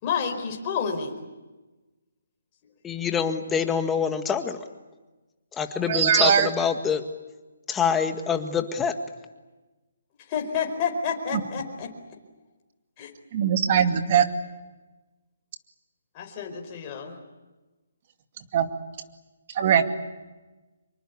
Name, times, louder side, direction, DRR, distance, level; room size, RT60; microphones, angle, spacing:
voice 1, 0.0-1.2 10.2-11.9 13.0-13.1 16.1-17.2, left 6 dB, 30° left, 2 dB, 4.9 m, -29 dB
voice 2, 2.8-4.6 5.6-7.0 7.7-8.9, left 7 dB, 10° left, 7 dB, 1.7 m, -25 dB
voice 3, 5.9-6.5 13.3-14.2 18.5-18.7 19.6-19.8, right 8 dB, 40° right, 7 dB, 2.3 m, -20 dB
26.0 x 24.0 x 8.5 m, 1.2 s
hypercardioid pair, 155°, 0 cm